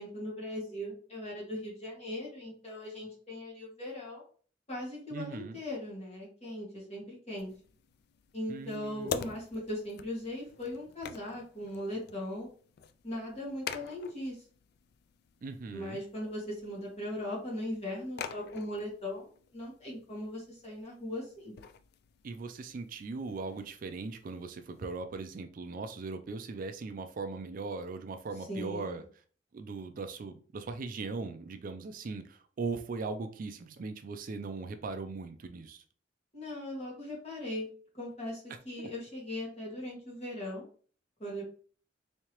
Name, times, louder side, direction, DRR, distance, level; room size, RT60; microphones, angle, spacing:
voice 1, 0.0-4.2 4.7-7.5 8.3-12.5 13.0-14.4 15.7-19.3 19.5-21.5 28.5-28.9 36.3-37.7 37.9-40.7 41.2-41.4, left 1 dB, 35° left, -4 dB, 1.8 m, -39 dB
voice 2, 5.1-5.6 8.5-9.4 15.4-16.0 22.2-29.0 29.5-35.8 38.8-38.9, right 4 dB, 50° right, 8 dB, 0.4 m, -39 dB
sound 1, 7.4-25.0, left 6 dB, 60° left, 0.3 m, -47 dB
3.6 x 3.2 x 2.9 m, 0.44 s
head